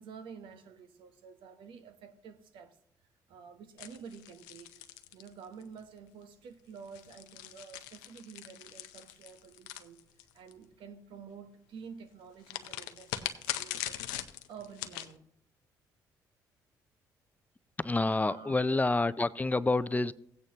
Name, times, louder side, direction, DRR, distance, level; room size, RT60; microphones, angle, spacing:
voice 1, 0.0-2.8 3.3-4.8 5.1-10.0 10.3-14.1 14.5-15.3 18.1-18.6, right 6 dB, 70° right, 0.9 m, -50 dB
sound 1, 3.8-5.8 6.8-10.5 12.5-15.1, left 13 dB, 90° left, 0.5 m, -41 dB
voice 2, 17.8-20.1, left 2 dB, 20° left, 0.5 m, -28 dB
16.0 x 8.9 x 2.9 m
hypercardioid pair, 55°, 9 cm